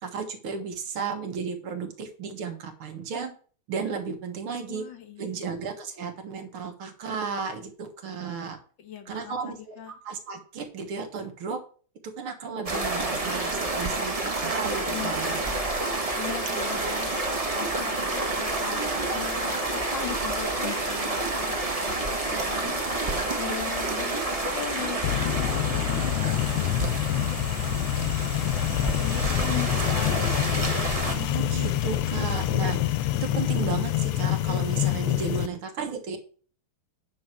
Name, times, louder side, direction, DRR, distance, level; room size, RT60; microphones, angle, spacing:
voice 1, 0.0-3.3 3.7-4.9 5.2-8.6 9.1-11.6 12.0-15.4 31.1-32.8 33.1-36.2, right 5 dB, 75° right, 5 dB, 2.3 m, -34 dB
voice 2, 4.7-5.6 8.8-9.9 14.9-15.7 16.2-17.1 17.5-22.8 23.4-30.2, left 11 dB, 60° left, 7 dB, 1.8 m, -40 dB
sound 1, 12.7-31.2, right 2 dB, 20° right, 1.1 m, -29 dB
rocket engine, 25.0-35.5, left 13 dB, 85° left, 1.6 m, -26 dB
9.4 x 6.2 x 4.7 m, 0.41 s
omnidirectional pair, 2.4 m